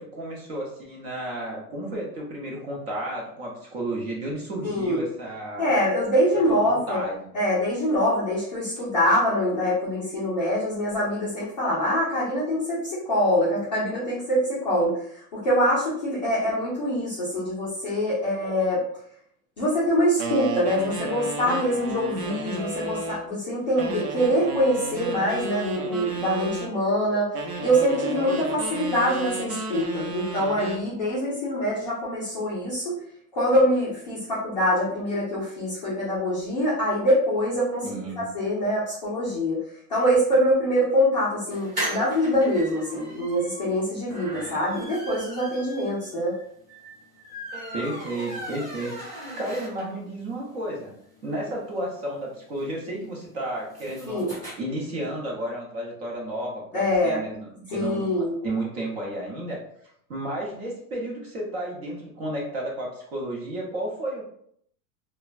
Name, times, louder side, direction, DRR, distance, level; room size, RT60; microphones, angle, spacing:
voice 1, 0.0-5.8 6.3-7.3 37.8-38.2 47.7-50.9 51.2-54.3 54.6-58.0 58.4-59.6 60.1-64.2, right 1 dB, 40° right, -2 dB, 0.8 m, -32 dB
voice 2, 4.6-5.0 5.6-7.0 7.3-15.0 15.3-18.8 19.6-27.3 27.6-33.0 33.3-37.9 38.2-39.6 39.9-46.4 54.1-54.3 56.7-57.2 57.7-58.3, equal, 30° left, -9 dB, 0.3 m, -24 dB
sound 1, 20.2-23.3 23.8-26.7 27.3-30.9, right 3 dB, 70° right, 0.8 m, -33 dB
sound 2, 41.5-50.1 50.5-50.6 50.8-50.9 51.1-54.5, right 1 dB, 15° right, 0.9 m, -38 dB
3.2 x 2.2 x 2.4 m, 0.66 s
supercardioid pair, 180°, 47 cm